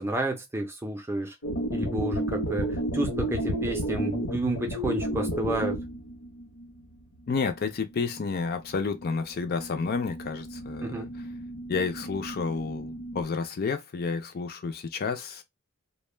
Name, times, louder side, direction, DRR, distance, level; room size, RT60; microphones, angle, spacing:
voice 1, 0.0-1.3 1.7-5.8 10.8-11.1, right 1 dB, 10° right, 0.5 m, -31 dB
sound 1, 1.4-6.8 7.3-7.4 7.6-7.7 7.9-8.7 9.0-13.2, right 1 dB, 70° left, 0.8 m, -33 dB
voice 2, 7.3-11.1 11.7-15.4, left 4 dB, 45° left, 0.4 m, -30 dB
2.1 x 2.1 x 3.2 m
head